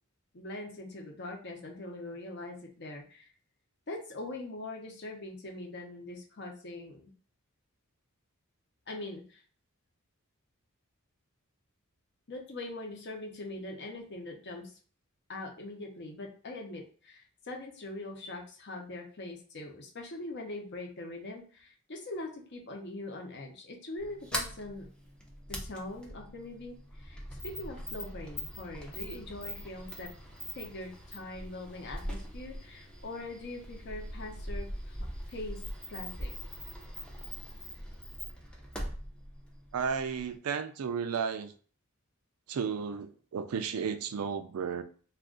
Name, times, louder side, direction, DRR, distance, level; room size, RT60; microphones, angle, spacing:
voice 1, 0.3-3.3 3.9-7.1 8.9-9.4 12.3-14.7 15.3-24.9 25.5-30.1 30.6-35.0 35.3-35.6 35.9-36.3, left 2 dB, 50° left, 1 dB, 0.7 m, -42 dB
Sliding door, 24.0-40.4, equal, 5° left, 0.5 m, -42 dB
voice 2, 39.7-41.5 42.5-44.8, right 6 dB, 80° right, 9 dB, 0.4 m, -33 dB
2.4 x 2.4 x 3.7 m, 0.41 s
head